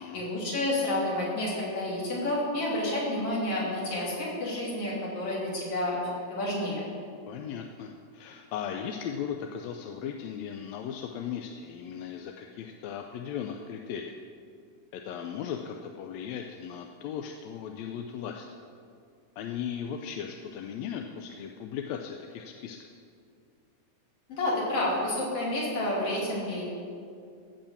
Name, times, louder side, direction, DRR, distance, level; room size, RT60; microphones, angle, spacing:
voice 1, 0.0-6.0 6.3-6.8 24.3-26.7, left 1 dB, 50° left, -4 dB, 3.6 m, -30 dB
voice 2, 7.3-14.2 14.9-18.5 19.4-22.8, left 8 dB, 75° left, 3 dB, 1.7 m, -37 dB
15.5 x 5.5 x 7.2 m, 2.3 s
omnidirectional pair, 3.4 m